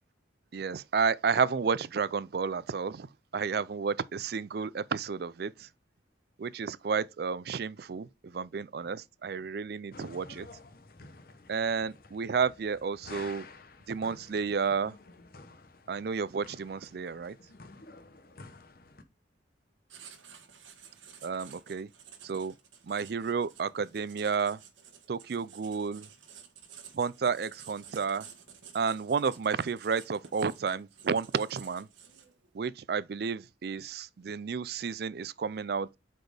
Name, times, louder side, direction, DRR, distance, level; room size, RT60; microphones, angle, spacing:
voice 1, 0.5-3.1 3.3-5.7 6.4-10.5 11.5-13.5 13.9-15.0 15.9-17.4 21.2-21.9 22.2-22.5 22.8-24.6 25.1-26.1 26.9-28.3 28.7-31.9 32.5-36.0, right 5 dB, 55° right, 0.4 m, -31 dB
sound 1, 9.9-19.0, left 3 dB, 50° left, 0.9 m, -51 dB
Writing, 19.9-32.5, right 7 dB, 80° right, 1.5 m, -52 dB
7.9 x 4.3 x 3.3 m
head